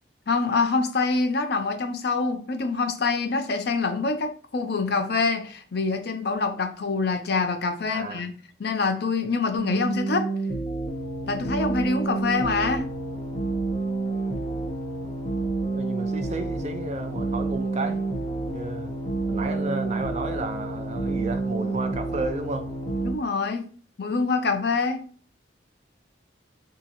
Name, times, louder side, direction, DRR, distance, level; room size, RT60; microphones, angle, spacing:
voice 1, 0.3-8.3 8.6-10.3 11.3-12.9 23.0-23.6 24.0-25.0, left 4 dB, 60° left, 0.6 m, -25 dB
voice 2, 7.9-8.2 15.7-18.0 18.5-18.9 19.3-22.7, right 2 dB, 40° right, 0.5 m, -32 dB
sound 1, 9.5-23.1, right 3 dB, 40° left, 1.1 m, -29 dB
3.6 x 2.9 x 4.0 m
head